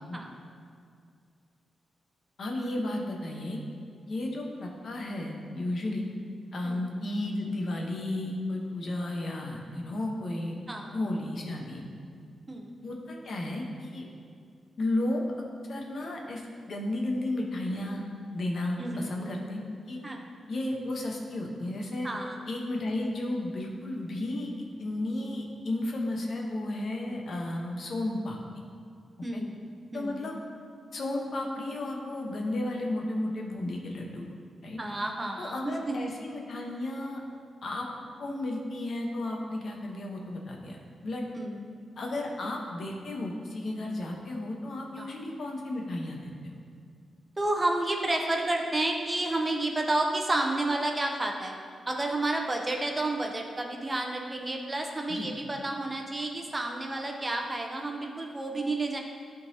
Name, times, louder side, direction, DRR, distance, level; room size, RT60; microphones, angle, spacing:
voice 1, 2.4-3.6 4.1-6.1 6.5-10.7 10.9-11.8 12.8-14.1 14.8-15.2 15.7-16.4 16.7-18.0 18.3-19.6 19.9-20.0 20.5-22.1 22.5-24.5 24.8-28.4 29.3-29.4 29.9-30.3 30.9-34.3 34.6-34.8 35.4-37.2 37.6-37.9 38.2-41.3 42.0-46.6 55.1-55.3, left 1 dB, 60° left, 0 dB, 0.9 m, -33 dB
voice 2, 10.7-11.0 12.5-12.8 18.8-19.4 20.0-20.2 22.0-22.4 29.2-30.5 34.8-36.1 41.4-41.7 45.0-45.1 47.4-51.6 51.9-59.0, right 2 dB, 20° right, 2 dB, 0.7 m, -31 dB
11.5 x 3.9 x 2.8 m, 2.3 s
cardioid pair, 90°, 0 cm